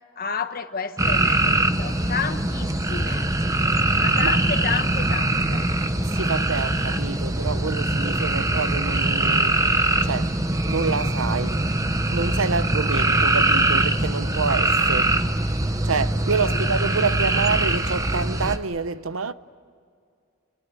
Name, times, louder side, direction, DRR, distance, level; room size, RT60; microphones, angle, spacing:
voice 1, 0.2-3.3 3.9-5.6 13.1-13.2 16.4-16.7, left 5 dB, 45° left, 1.3 m, -31 dB
sound 1, 1.0-18.6, right 2 dB, 15° right, 1.0 m, -22 dB
voice 2, 6.1-10.4 10.7-11.6 12.1-15.2 15.8-19.3, right 4 dB, 75° right, 0.8 m, -27 dB
29.0 x 22.0 x 8.4 m
head